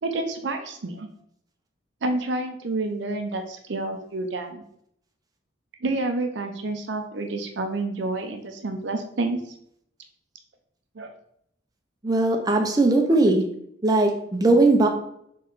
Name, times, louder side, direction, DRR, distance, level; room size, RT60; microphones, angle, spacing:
voice 1, 0.0-1.1 2.0-4.6 5.8-9.4 11.0-11.1, right 2 dB, 65° right, 5 dB, 0.6 m, -29 dB
voice 2, 12.0-13.4 13.8-14.9, right 2 dB, 20° right, 2 dB, 0.6 m, -19 dB
4.2 x 3.1 x 3.9 m, 0.70 s
head